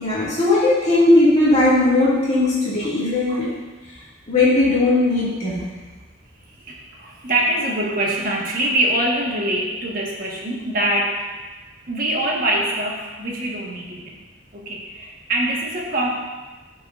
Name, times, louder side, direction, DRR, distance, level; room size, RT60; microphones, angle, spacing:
voice 1, 0.0-3.5 4.3-5.8, left 2 dB, 40° left, -9 dB, 2.1 m, -18 dB
voice 2, 6.5-11.2 11.9-14.2 14.5-16.1, right 1 dB, 50° right, -3 dB, 1.4 m, -24 dB
13.5 x 4.7 x 2.5 m, 1.3 s
head